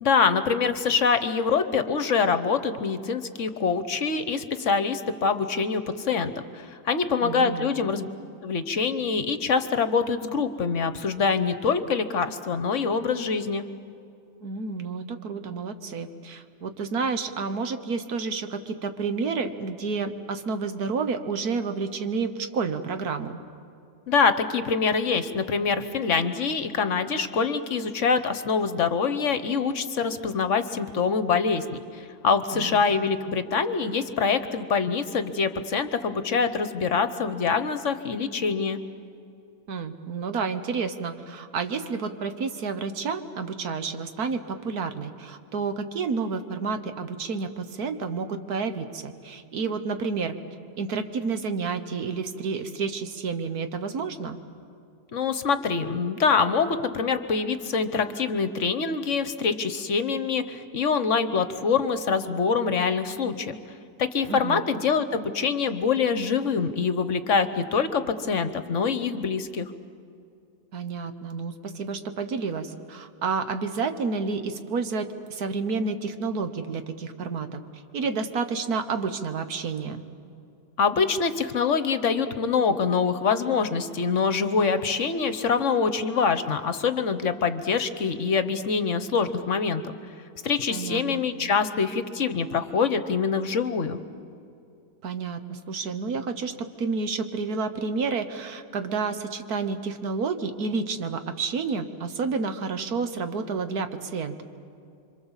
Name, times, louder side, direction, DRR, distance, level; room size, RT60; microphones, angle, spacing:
voice 1, 0.0-8.1 8.4-13.6 24.1-38.8 55.1-63.6 64.0-69.7 80.8-89.9 90.4-94.0, left 5 dB, 55° left, 11 dB, 1.2 m, -25 dB
voice 2, 7.2-7.7 14.4-23.4 32.5-32.8 39.7-50.3 50.8-54.4 64.3-64.6 70.7-77.6 77.9-80.0 90.7-91.2 95.0-104.4, right 4 dB, 75° right, 8 dB, 1.7 m, -30 dB
26.5 x 25.0 x 7.3 m, 2.6 s
omnidirectional pair, 1.6 m